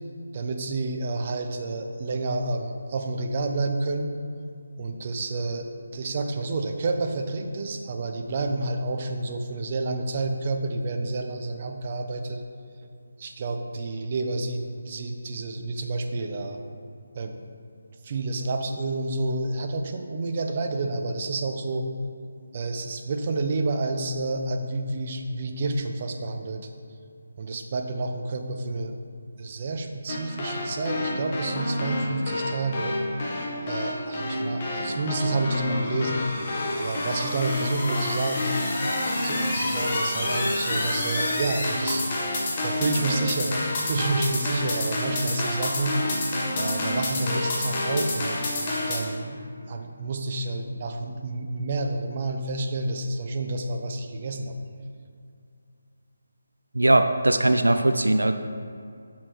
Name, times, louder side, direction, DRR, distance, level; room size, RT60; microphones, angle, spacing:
voice 1, 0.3-4.1 4.8-12.4 13.2-16.6 17.1-17.4 18.0-21.9 22.5-26.7 27.4-28.9 29.4-33.0 33.6-36.2 36.8-38.6 39.2-42.0 42.6-46.0 46.5-48.4 48.9-49.4 49.7-54.5, right 2 dB, 40° right, 4 dB, 0.8 m, -29 dB
sound 1, 30.1-49.0, left 1 dB, 35° left, 1.7 m, -28 dB
voice 2, 56.7-58.3, right 1 dB, 85° right, 8 dB, 0.5 m, -20 dB
8.5 x 7.2 x 4.6 m, 2.4 s
figure-of-eight pair, 155°, 0 cm